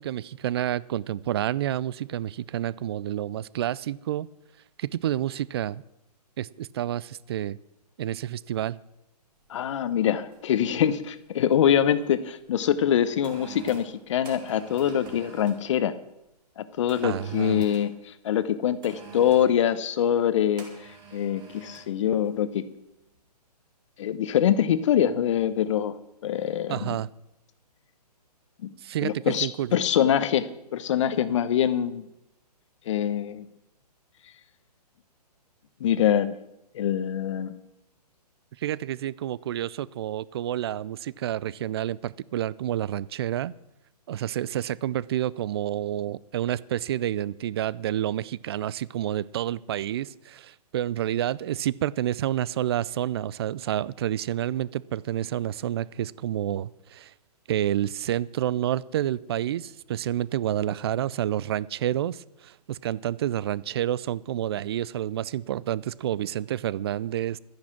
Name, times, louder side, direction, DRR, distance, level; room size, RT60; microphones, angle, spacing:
voice 1, 0.0-4.3 4.8-5.8 6.4-7.6 8.0-8.8 17.0-17.7 26.7-27.1 28.8-29.8 38.6-43.5 44.1-57.1 57.5-67.4, right 12 dB, 40° right, 21 dB, 0.4 m, -29 dB
voice 2, 9.5-15.9 16.6-20.7 21.1-22.6 24.0-26.0 26.2-27.0 28.6-28.7 29.0-32.1 32.9-33.5 35.8-36.4 36.7-37.5, left 9 dB, 45° left, 14 dB, 1.0 m, -24 dB
sound 1, 9.5-9.7 10.3-10.6 10.9-12.0 12.7-15.6 16.9-17.9 18.8-19.5 20.6-21.9 22.2-22.5, right 5 dB, 20° right, 2.6 m, -46 dB
12.5 x 10.0 x 6.0 m, 0.86 s
hypercardioid pair, 135°, 21 cm